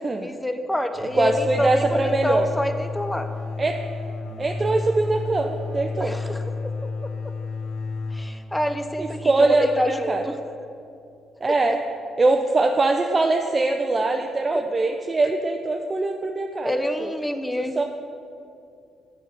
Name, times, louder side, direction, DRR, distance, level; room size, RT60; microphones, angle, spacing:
voice 1, 0.2-3.3 6.0-6.4 6.8-6.9 8.1-10.4 14.5-14.6 16.6-17.8, left 1 dB, 10° left, 7 dB, 0.7 m, -27 dB
sound 1, 0.9-10.4, left 3 dB, 75° left, 0.9 m, -32 dB
voice 2, 1.1-2.5 3.6-3.8 4.4-6.1 9.0-10.3 11.4-11.8 12.2-16.7 17.0-17.1 17.6-17.8, right 3 dB, 30° right, 3 dB, 0.5 m, -22 dB
7.6 x 5.7 x 6.7 m, 2.5 s
cardioid pair, 90°, 0 cm